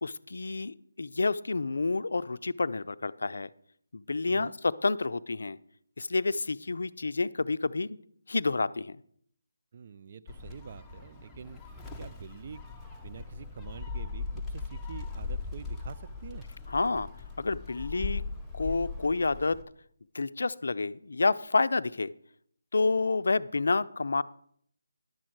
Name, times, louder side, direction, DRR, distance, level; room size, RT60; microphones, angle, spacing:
voice 1, 0.0-3.5 3.9-5.6 6.0-8.0 8.3-9.0 16.7-17.1 17.4-18.2 18.5-19.6 20.1-22.1 22.7-24.2, left 3 dB, 70° left, 14 dB, 0.4 m, -29 dB
voice 2, 9.7-11.6 12.0-12.6 13.0-16.5, right 6 dB, 40° right, 13 dB, 0.4 m, -46 dB
Gull seagull, 10.3-19.6, left 4 dB, 5° left, 0.8 m, -39 dB
11.0 x 7.3 x 4.5 m, 0.64 s
figure-of-eight pair, 160°, 0 cm